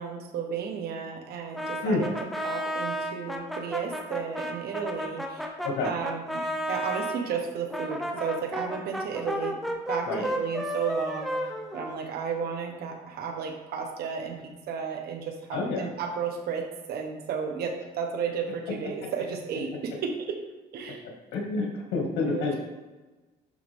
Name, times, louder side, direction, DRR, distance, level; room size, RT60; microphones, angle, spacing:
voice 1, 0.0-2.1 2.4-5.5 5.8-9.6 9.9-11.4 11.7-20.4 20.7-21.0 22.3-22.6, right 6 dB, 70° right, 3 dB, 1.4 m, -33 dB
Brass instrument, 1.5-7.2 7.7-12.5, equal, ahead, 1.0 m, -33 dB
voice 2, 15.5-15.9 21.3-22.6, left 3 dB, 80° left, -1 dB, 2.2 m, -28 dB
11.5 x 3.9 x 3.6 m, 1.2 s
cardioid pair, 110°, 17 cm